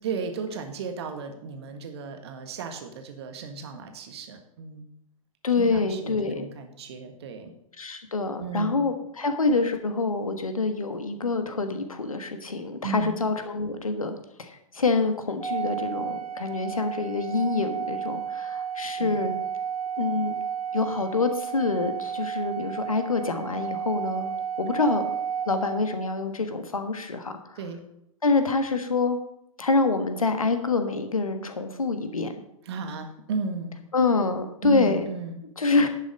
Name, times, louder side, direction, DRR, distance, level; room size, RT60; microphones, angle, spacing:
voice 1, 0.0-4.9 5.6-7.5 8.4-8.8 12.8-13.2 19.0-19.2 27.6-27.8 32.7-33.8 34.6-35.4, right 4 dB, 50° right, 6 dB, 1.6 m, -34 dB
voice 2, 5.4-6.4 7.8-19.3 20.0-20.3 20.7-24.3 24.6-25.0 25.5-27.6 28.2-29.2 29.6-32.3 33.9-35.1 35.6-35.9, left 3 dB, 75° left, 8 dB, 1.4 m, -26 dB
Organ, 15.4-26.2, right 7 dB, 85° right, 0.8 m, -32 dB
11.0 x 7.0 x 5.2 m, 0.78 s
figure-of-eight pair, 110°, 18 cm